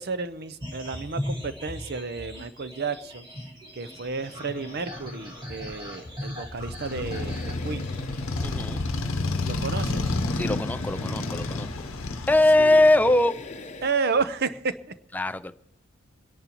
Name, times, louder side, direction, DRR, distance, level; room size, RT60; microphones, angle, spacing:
voice 1, 0.0-3.3 3.7-7.9 9.4-10.1 12.6-12.8 13.8-14.8, right 4 dB, 50° right, 13 dB, 0.6 m, -31 dB
sound 1, 0.6-13.7 14.0-14.7, equal, 20° right, 1.8 m, -40 dB
sound 2, 4.0-13.9, left 3 dB, 35° left, 0.8 m, -46 dB
Motorcycle, 6.5-13.2, left 2 dB, 75° left, 0.8 m, -30 dB
voice 2, 8.4-8.8 10.3-11.7 12.3-13.4 15.1-15.5, left 1 dB, 10° left, 9 dB, 0.4 m, -21 dB
27.0 x 11.0 x 3.0 m, 0.86 s
head